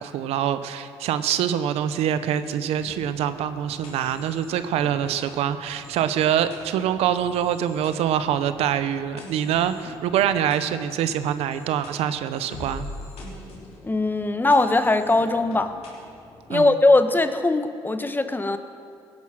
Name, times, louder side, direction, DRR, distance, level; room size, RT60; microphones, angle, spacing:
voice 1, 0.0-12.9 16.5-16.7, right 9 dB, 80° right, 12 dB, 0.7 m, -25 dB
sound 1, 2.6-16.5, left 2 dB, 75° left, 3.6 m, -44 dB
voice 2, 13.8-15.7 16.5-18.6, left 2 dB, 20° left, 10 dB, 1.0 m, -20 dB
17.5 x 10.5 x 6.2 m, 2.3 s
supercardioid pair, 70°, 10 cm